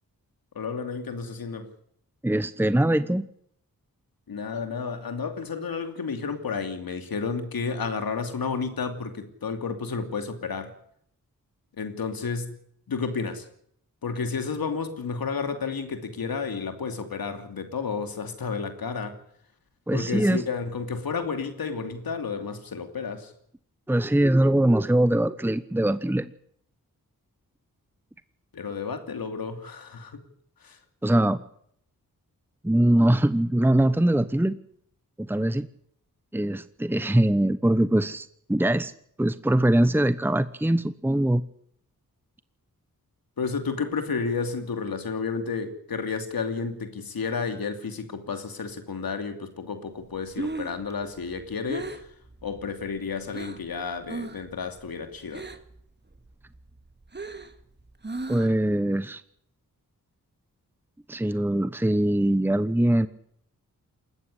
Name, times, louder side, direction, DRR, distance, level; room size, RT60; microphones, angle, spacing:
voice 1, 0.5-1.7 4.3-10.7 11.7-12.5 12.9-13.5 14.0-19.2 19.9-23.3 28.5-30.2 30.6-30.8 43.4-52.1 52.4-55.5, left 5 dB, 90° left, 7 dB, 2.9 m, -31 dB
voice 2, 2.2-3.3 19.9-20.4 23.9-26.3 31.0-31.4 32.6-34.6 35.2-35.7 36.3-38.9 39.2-41.4 58.3-59.2 61.1-63.1, right 1 dB, 5° right, 13 dB, 1.0 m, -22 dB
Breathing, 50.1-53.7 54.0-54.5 54.8-55.8 56.1-58.7, right 2 dB, 30° right, 2.1 m, -37 dB
20.5 x 15.0 x 10.0 m, 0.68 s
cardioid pair, 60°, 35 cm